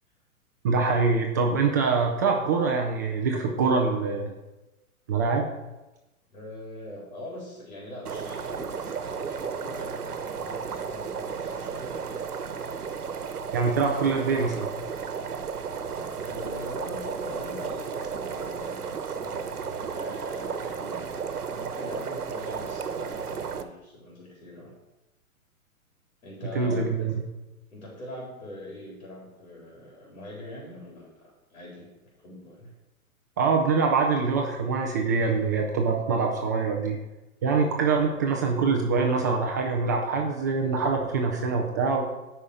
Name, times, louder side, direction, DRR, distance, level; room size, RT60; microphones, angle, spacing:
voice 1, 0.6-4.3 5.1-5.5 13.5-14.7 26.5-27.1 33.4-37.0 37.4-42.1, right 4 dB, 15° right, 1 dB, 0.4 m, -24 dB
voice 2, 6.3-12.3 16.2-24.7 26.2-27.2 27.7-31.9 32.2-32.7, left 1 dB, 65° left, -4 dB, 4.1 m, -42 dB
sound 1, 8.1-23.6, right 6 dB, 90° right, 1.1 m, -34 dB
13.0 x 5.6 x 4.9 m, 1.0 s
hypercardioid pair, 130°, 44 cm